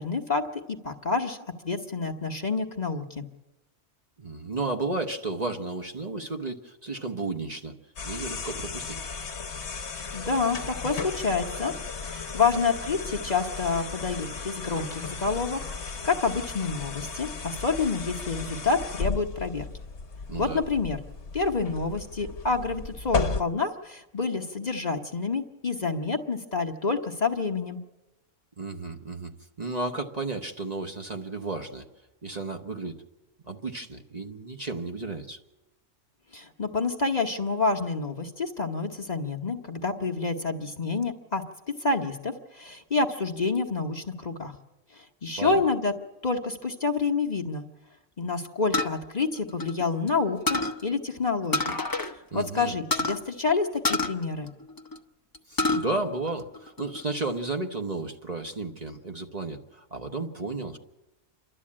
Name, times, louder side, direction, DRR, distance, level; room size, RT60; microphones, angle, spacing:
voice 1, 0.0-1.4 1.6-3.3 10.1-11.7 12.0-19.7 20.4-21.0 21.3-27.8 36.3-41.4 41.8-44.5 44.9-45.9 46.2-47.7 48.2-51.8 52.3-54.5, left 4 dB, 35° left, 3 dB, 1.1 m, -28 dB
voice 2, 4.2-7.7 8.0-9.0 20.3-20.6 28.6-29.3 29.6-31.9 32.2-33.0 33.4-35.4 45.4-45.7 52.3-52.8 55.5-60.8, right 3 dB, 35° right, 4 dB, 1.1 m, -33 dB
sound 1, 8.0-23.4, left 4 dB, 65° left, 1.3 m, -35 dB
sound 2, 48.7-50.1 50.5-50.8 51.5-52.1 52.4-52.5 52.9-53.2 53.8-55.0 55.3-55.8 56.3-57.0, left 3 dB, 20° left, 0.8 m, -27 dB
28.0 x 12.5 x 8.6 m, 1.0 s
omnidirectional pair, 1.3 m